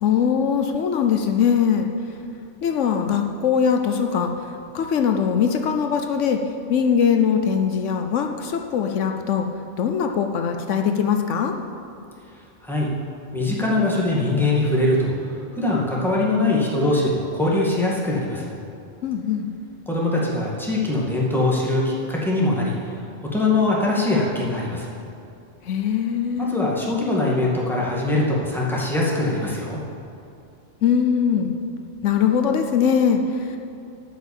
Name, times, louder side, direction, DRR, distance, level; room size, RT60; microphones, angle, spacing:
voice 1, 0.0-1.9 2.6-4.3 4.7-6.4 6.7-9.5 9.8-11.5 19.0-19.5 25.6-26.5 30.8-31.5 32.0-33.6, left 7 dB, 75° left, 5 dB, 1.0 m, -21 dB
voice 2, 13.3-15.1 15.6-18.5 19.9-22.8 23.3-24.9 26.4-29.8, left 2 dB, ahead, -5 dB, 2.1 m, -22 dB
13.5 x 5.8 x 7.2 m, 2.6 s
omnidirectional pair, 1.3 m